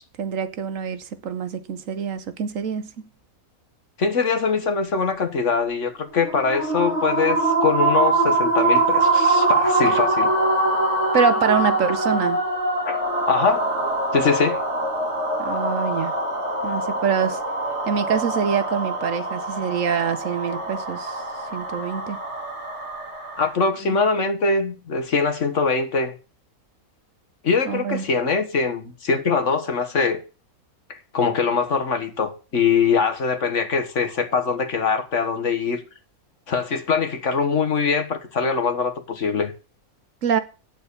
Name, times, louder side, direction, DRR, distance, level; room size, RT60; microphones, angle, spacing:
voice 1, 0.2-3.1 11.1-12.4 15.4-16.2 16.6-17.4 17.9-21.2 21.5-22.2 23.9-24.0 27.7-28.0 40.2-40.4, right 7 dB, 65° right, 1.2 m, -25 dB
voice 2, 4.0-10.3 12.8-13.0 13.3-13.6 14.1-14.6 23.4-26.1 27.4-30.2 30.9-35.8 36.5-39.5, left 5 dB, 55° left, 1.7 m, -22 dB
sound 1, 6.2-23.5, right 2 dB, 50° right, 3.8 m, -23 dB
9.1 x 6.8 x 6.9 m
omnidirectional pair, 1.5 m